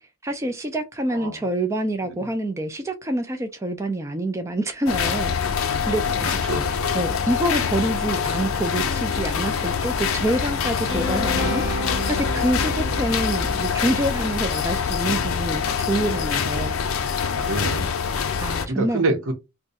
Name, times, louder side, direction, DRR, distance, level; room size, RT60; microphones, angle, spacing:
voice 1, 0.2-5.4 5.9-6.4 6.9-11.6 12.1-16.8 18.4-19.1, right 1 dB, 15° right, 0.4 m, -26 dB
sound 1, 4.9-18.7, left 6 dB, 80° left, 0.5 m, -25 dB
voice 2, 6.1-7.0 17.3-17.9 18.7-19.3, right 2 dB, 80° right, 1.1 m, -27 dB
sound 2, 10.9-15.0, left 1 dB, 40° right, 1.5 m, -30 dB
2.6 x 2.3 x 4.0 m
head